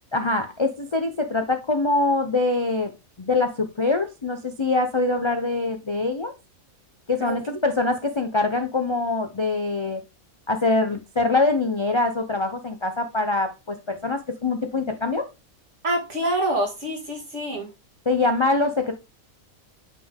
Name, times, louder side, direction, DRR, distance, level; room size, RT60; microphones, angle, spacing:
voice 1, 0.1-2.9 3.2-6.3 7.1-10.0 10.5-15.3 18.1-18.9, left 3 dB, 50° left, 0.3 m, -24 dB
voice 2, 15.8-17.7, right 1 dB, 50° right, 2.3 m, -26 dB
8.3 x 3.7 x 3.6 m
omnidirectional pair, 1.6 m